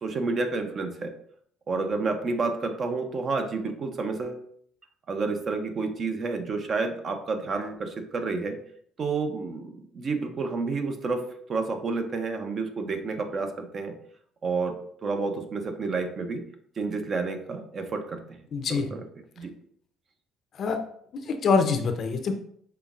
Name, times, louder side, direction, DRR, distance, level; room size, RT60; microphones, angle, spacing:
voice 1, 0.0-1.1 1.7-4.4 5.1-8.6 9.0-11.2 11.5-13.9 14.4-14.7 15.0-16.4 16.8-18.2 18.7-19.0 19.4-19.5, right 4 dB, 35° right, 6 dB, 0.6 m, -30 dB
voice 2, 18.5-18.9 20.5-20.8 21.2-22.3, left 5 dB, 45° left, 7 dB, 0.5 m, -25 dB
5.7 x 3.4 x 2.4 m, 0.64 s
cardioid pair, 135°, 0 cm